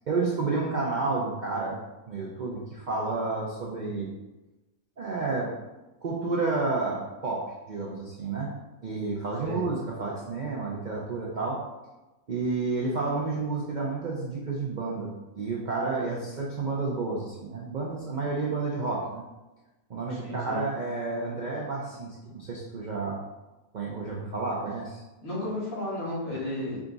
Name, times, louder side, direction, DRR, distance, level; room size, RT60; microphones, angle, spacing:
voice 1, 0.1-1.8 2.1-4.1 5.0-5.5 6.0-8.5 8.8-11.6 12.3-19.2 19.9-23.2 23.7-25.0, right 3 dB, 60° right, -3 dB, 0.5 m, -30 dB
voice 2, 20.1-20.6 25.2-26.8, left 1 dB, 70° left, -8 dB, 2.1 m, -33 dB
4.8 x 2.4 x 3.8 m, 1.1 s
omnidirectional pair, 1.5 m